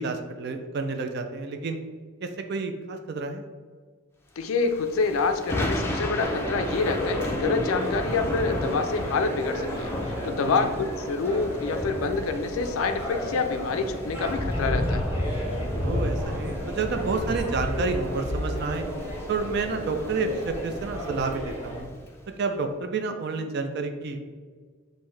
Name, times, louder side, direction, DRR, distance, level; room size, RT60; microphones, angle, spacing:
voice 1, 0.0-1.8 2.2-3.4 10.3-10.7 15.7-18.9 19.3-21.9 22.4-24.2, right 4 dB, 50° right, 6 dB, 0.4 m, -30 dB
voice 2, 4.4-15.0, left 4 dB, 75° left, 8 dB, 0.4 m, -27 dB
Thunder / Rain, 4.6-22.1, left 1 dB, 10° left, 0.4 m, -32 dB
sound 1, 6.2-21.8, right 1 dB, 10° right, 1.1 m, -34 dB
5.5 x 2.6 x 3.2 m, 1.5 s
head